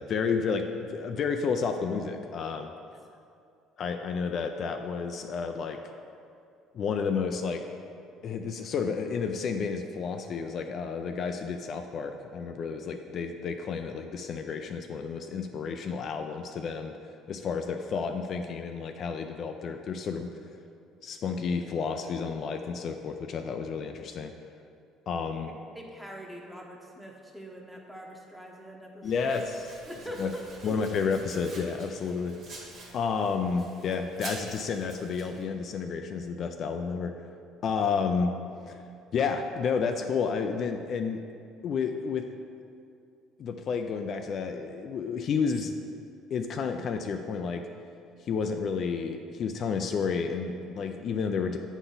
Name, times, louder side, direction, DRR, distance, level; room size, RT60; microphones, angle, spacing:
voice 1, 0.0-2.7 3.8-5.8 6.7-7.6 8.2-16.9 17.3-20.3 21.0-24.3 25.1-25.5 29.0-29.8 30.2-30.3 30.6-32.7 32.9-37.1 37.6-38.3 38.7-38.8 39.1-41.2 41.6-42.3 43.4-45.7 46.3-47.6 48.2-51.6, left 5 dB, 50° left, 5 dB, 0.3 m, -31 dB
voice 2, 25.7-29.3 29.9-30.7, right 1 dB, 5° right, -1 dB, 1.0 m, -43 dB
Domestic sounds home sounds, 29.0-35.4, right 2 dB, 60° right, 1.6 m, -47 dB
8.0 x 4.0 x 3.9 m, 2.4 s
supercardioid pair, 100°, 0 cm